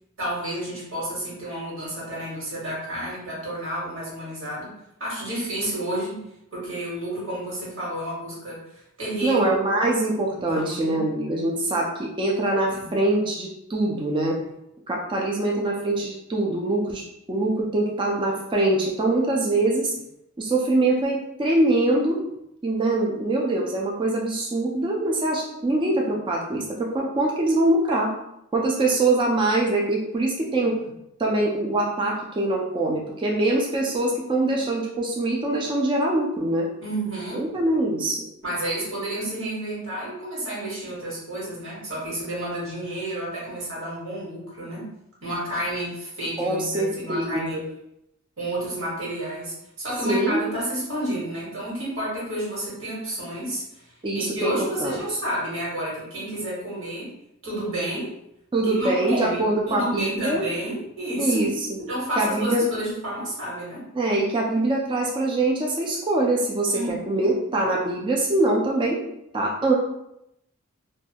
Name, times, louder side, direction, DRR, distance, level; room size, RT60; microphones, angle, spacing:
voice 1, 0.2-4.7 5.0-6.2 6.5-9.6 10.3-11.0 12.7-12.9 36.8-37.5 38.4-44.9 45.2-47.6 48.4-57.1 57.4-58.1 58.6-61.5 61.9-63.9 66.7-67.4, right 1 dB, 60° right, -6 dB, 1.2 m, -30 dB
voice 2, 9.2-14.4 14.9-17.0 17.3-19.9 20.4-22.2 22.6-28.1 28.5-30.9 31.2-36.7 37.3-38.2 46.4-47.6 50.0-50.4 54.0-54.5 54.8-55.0 58.5-60.4 61.2-61.7 62.2-62.7 63.9-69.0 69.3-69.7, right 2 dB, 20° right, -1 dB, 0.3 m, -23 dB
2.5 x 2.2 x 2.8 m, 0.81 s
head